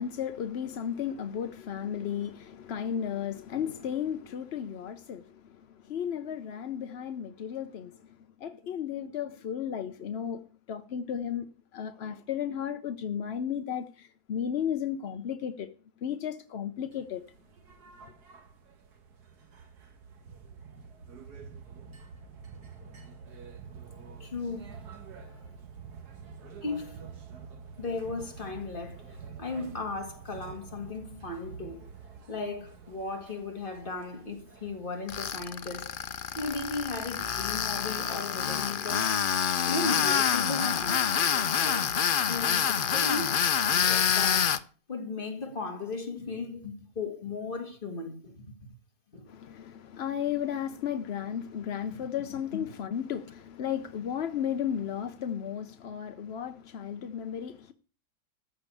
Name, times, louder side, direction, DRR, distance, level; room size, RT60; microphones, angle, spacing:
voice 1, 0.0-15.7 16.0-17.2 49.3-57.7, left 9 dB, 55° left, 0.7 m, -34 dB
sound 1, 16.9-36.0, right 6 dB, 70° right, 1.9 m, -48 dB
voice 2, 24.2-24.7 25.2-25.5 26.6-26.9 27.8-31.8 32.3-36.0 36.4-39.2 39.6-41.9 42.3-43.4 43.7-48.5 49.1-49.3, left 3 dB, 30° left, 2.1 m, -36 dB
Tools, 35.1-44.6, left 8 dB, 85° left, 0.4 m, -27 dB
14.0 x 5.0 x 8.4 m
omnidirectional pair, 1.8 m